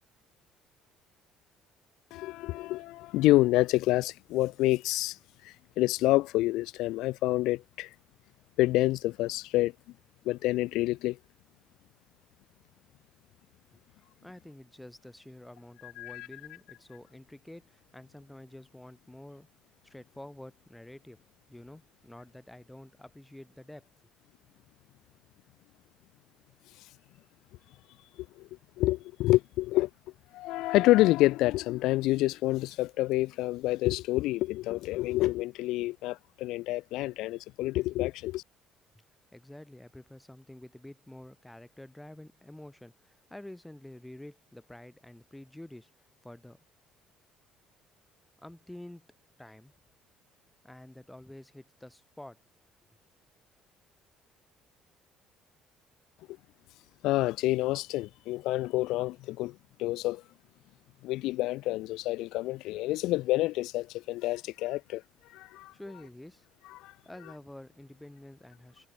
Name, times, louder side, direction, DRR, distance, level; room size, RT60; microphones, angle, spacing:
voice 1, 2.1-5.2 5.4-7.9 8.6-9.7 10.3-11.2 15.8-16.3 28.4-28.5 28.8-29.9 30.3-38.4 57.0-60.2 61.0-65.0 65.3-65.7 66.7-66.9, left 18 dB, 80° left, 0.5 m, -28 dB
voice 2, 14.2-19.5 19.8-21.2 21.5-23.9 39.3-45.9 46.2-46.6 48.4-49.1 49.4-49.7 50.6-52.4 65.7-66.5 67.0-68.9, left 1 dB, 5° left, 3.1 m, -48 dB
supercardioid pair, 85°, 0 cm